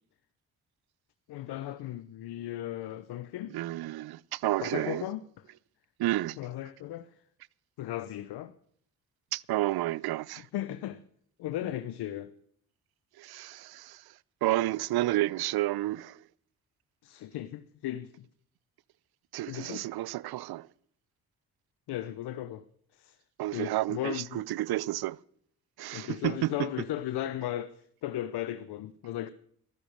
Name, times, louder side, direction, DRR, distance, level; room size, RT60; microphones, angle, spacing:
voice 1, 1.3-3.5 4.6-5.2 6.4-7.1 7.8-8.5 10.5-11.0 11.4-12.3 17.0-18.3 19.5-19.8 21.9-22.6 22.9-23.2 23.5-24.4 25.9-29.3, left 12 dB, 70° left, 0.9 m, -36 dB
voice 2, 3.5-5.1 6.0-6.4 9.3-10.5 13.2-14.1 14.4-16.2 19.3-20.7 23.4-25.2 25.8-26.7, right 16 dB, 65° right, 0.6 m, -31 dB
14.0 x 13.0 x 6.6 m
hypercardioid pair, 45°, 41 cm